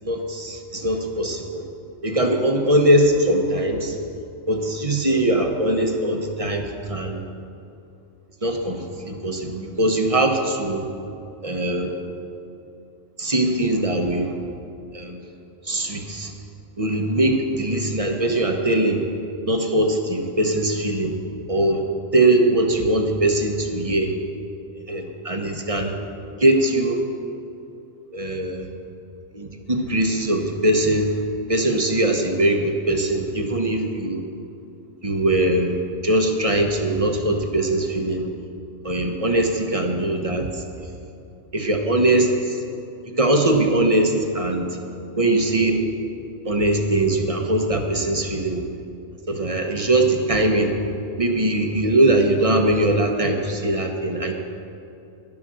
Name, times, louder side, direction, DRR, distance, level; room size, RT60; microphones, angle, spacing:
voice 1, 0.0-1.6 2.0-4.0 4.5-7.2 8.4-10.9 11.4-12.0 13.2-14.4 14.9-15.2 15.6-16.3 16.8-19.0 19.5-21.2 21.5-21.8 22.1-24.2 24.9-25.9 26.4-27.0 28.1-28.7 29.3-31.2 31.5-34.2 35.0-35.8 36.0-38.3 38.8-40.6 41.5-42.6 43.2-44.8 45.2-45.8 46.4-48.6 49.3-50.7 51.2-54.3, right 1 dB, 30° right, 3 dB, 1.0 m, -21 dB
12.0 x 11.0 x 6.3 m, 2.7 s
omnidirectional pair, 1.4 m